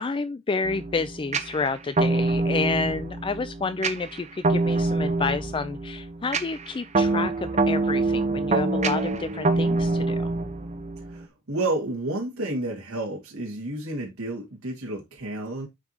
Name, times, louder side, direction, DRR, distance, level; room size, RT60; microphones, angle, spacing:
voice 1, 0.0-10.3, left 4 dB, 25° left, 0.4 m, -30 dB
sound 1, 0.6-11.2, right 2 dB, 35° right, 0.9 m, -25 dB
voice 2, 11.1-15.7, right 2 dB, 75° right, 2.0 m, -30 dB
9.5 x 4.6 x 2.8 m
head